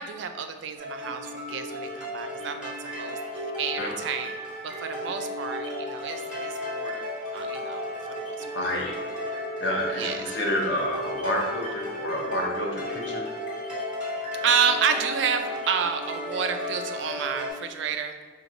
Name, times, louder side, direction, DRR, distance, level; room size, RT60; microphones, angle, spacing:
voice 1, 0.0-3.2 3.6-4.3 4.6-7.1 7.3-7.9 8.2-8.5 9.9-10.2 14.4-18.2, right 6 dB, 85° right, 8 dB, 0.3 m, -29 dB
sound 1, 0.8-17.5, left 1 dB, 5° right, 1.0 m, -34 dB
voice 2, 8.5-8.9 9.6-13.3, left 1 dB, 85° left, 0 dB, 0.7 m, -29 dB
5.0 x 2.9 x 2.5 m, 1.4 s
head